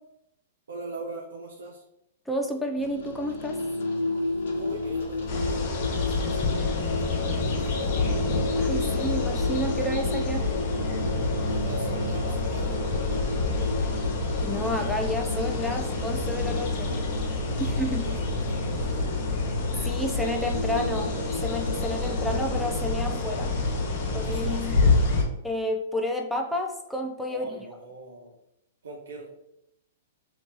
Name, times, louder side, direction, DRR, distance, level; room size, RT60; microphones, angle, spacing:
voice 1, 0.7-1.8 4.5-8.0 11.4-13.8 17.5-19.2 24.2-24.8 27.3-28.3 28.8-29.3, right 2 dB, 85° right, -1 dB, 0.6 m, -41 dB
voice 2, 2.3-3.6 8.5-10.5 14.4-16.9 17.6-18.1 19.8-23.5 24.1-24.9 25.4-27.5, left 1 dB, 5° left, 2 dB, 0.4 m, -31 dB
sound 1, 2.7-22.6, left 2 dB, 70° left, 1.0 m, -33 dB
sound 2, 5.3-25.2, left 3 dB, 50° left, 1.1 m, -28 dB
2.9 x 2.8 x 3.5 m, 0.81 s
hypercardioid pair, 130°, 0 cm